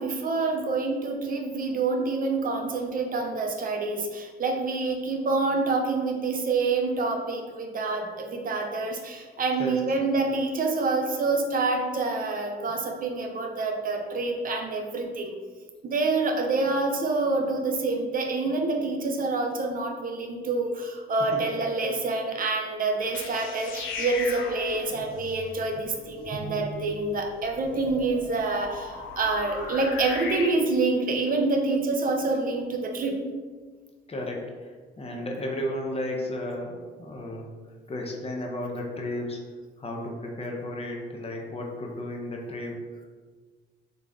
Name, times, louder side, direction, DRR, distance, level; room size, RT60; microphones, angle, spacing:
voice 1, 0.0-15.3 15.8-33.2, right 3 dB, 45° right, 3 dB, 0.6 m, -27 dB
sound 1, 23.0-30.5, left 4 dB, 80° left, 0.6 m, -38 dB
voice 2, 34.1-37.5 37.9-39.4 39.8-42.8, left 1 dB, 30° left, 0 dB, 0.7 m, -33 dB
3.9 x 2.3 x 3.5 m, 1.5 s
cardioid pair, 90°, 20 cm